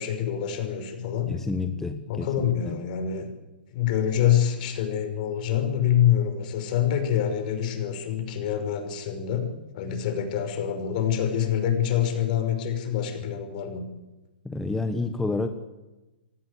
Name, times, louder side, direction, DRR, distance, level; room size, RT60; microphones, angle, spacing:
voice 1, 0.0-1.3 2.1-3.3 3.7-9.5 9.7-13.9, left 9 dB, 50° left, 6 dB, 5.9 m, -26 dB
voice 2, 1.3-2.3 2.7-2.8 14.4-15.5, left 3 dB, 5° left, 7 dB, 1.3 m, -29 dB
29.0 x 17.0 x 8.5 m, 1.1 s
hypercardioid pair, 140°, 6 cm